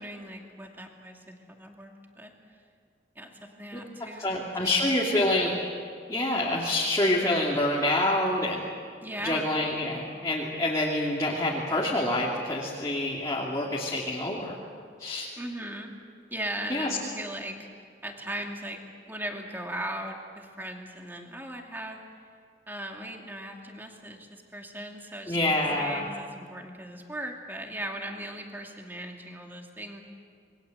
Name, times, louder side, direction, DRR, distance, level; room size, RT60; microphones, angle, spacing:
voice 1, 0.0-2.3 3.2-5.3 9.0-9.5 15.4-15.9 16.3-18.8 19.1-22.0 22.7-30.0, right 1 dB, 10° right, 1 dB, 2.5 m, -38 dB
voice 2, 4.2-5.6 6.1-8.7 9.2-14.5 15.0-15.3 16.7-16.9 25.3-26.1, left 1 dB, 20° left, -5 dB, 2.8 m, -27 dB
28.0 x 22.0 x 8.0 m, 2.1 s
head